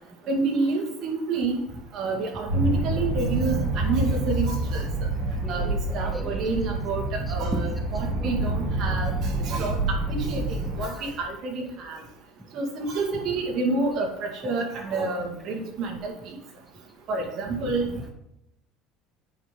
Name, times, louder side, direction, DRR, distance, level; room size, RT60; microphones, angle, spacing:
voice 1, 0.3-1.6 1.9-4.9 5.5-7.0 7.3-9.8 10.1-10.4 10.8-12.0 12.5-16.3 17.1-17.9, right 3 dB, 55° right, 1 dB, 2.1 m, -28 dB
sound 1, 2.5-10.8, right 2 dB, 85° right, 2.4 m, -27 dB
voice 2, 5.2-6.5 7.3-7.8 8.2-8.3 9.6-11.3 11.6-11.7 12.4-12.5 14.7-15.1 17.8-18.1, right 1 dB, 5° right, 6 dB, 0.6 m, -40 dB
9.3 x 5.3 x 3.8 m, 0.78 s
supercardioid pair, 120°, 0 cm